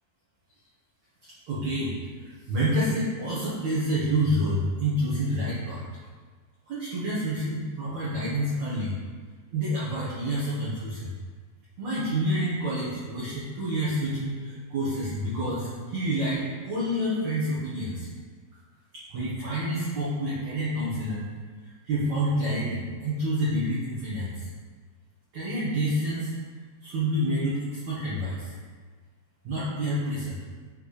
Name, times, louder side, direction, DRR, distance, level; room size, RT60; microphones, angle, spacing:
voice 1, 1.5-1.9 2.2-5.8 6.7-9.0 9.5-11.1 11.8-18.1 19.1-21.2 21.8-24.5 25.3-26.3 26.8-28.5 29.4-30.4, right 1 dB, 70° right, -10 dB, 1.7 m, -28 dB
8.6 x 3.3 x 4.1 m, 1.5 s
omnidirectional pair, 5.3 m